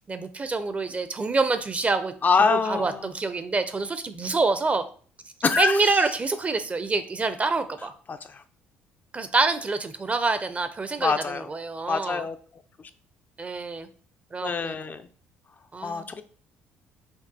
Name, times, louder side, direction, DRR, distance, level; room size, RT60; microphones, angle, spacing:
voice 1, 0.0-2.1 2.4-4.8 5.6-7.9 9.1-12.3 13.4-13.9 14.3-14.8 15.7-16.1, right 3 dB, 25° right, 10 dB, 0.5 m, -26 dB
voice 2, 2.2-2.9 5.4-5.7 11.0-11.5 11.9-12.4 14.4-15.0 15.8-16.2, left 5 dB, 35° left, 9 dB, 0.3 m, -24 dB
5.2 x 2.3 x 2.6 m, 0.43 s
hypercardioid pair, 65°, 5 cm